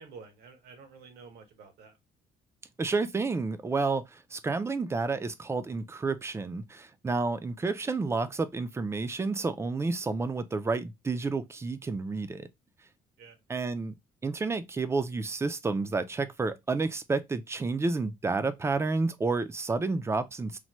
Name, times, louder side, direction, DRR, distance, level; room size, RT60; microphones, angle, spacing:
voice 1, 0.0-2.0 13.2-13.4, right 5 dB, 75° right, 0.9 m, -50 dB
voice 2, 2.8-12.5 13.5-14.0 14.2-20.6, right 3 dB, 15° right, 0.3 m, -30 dB
3.2 x 2.1 x 2.8 m
cardioid pair, 110°, 17 cm